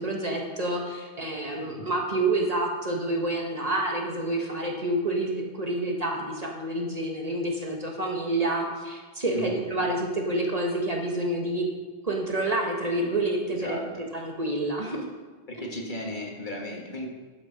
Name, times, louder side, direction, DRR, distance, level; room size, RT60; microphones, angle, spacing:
voice 1, 0.0-11.7 12.0-15.0, right 1 dB, 40° right, 0 dB, 1.4 m, -28 dB
voice 2, 1.6-1.9 9.3-9.6 13.5-14.0 15.5-17.1, left 1 dB, 50° left, 0 dB, 1.6 m, -35 dB
11.0 x 6.6 x 5.6 m, 1.4 s
omnidirectional pair, 1.1 m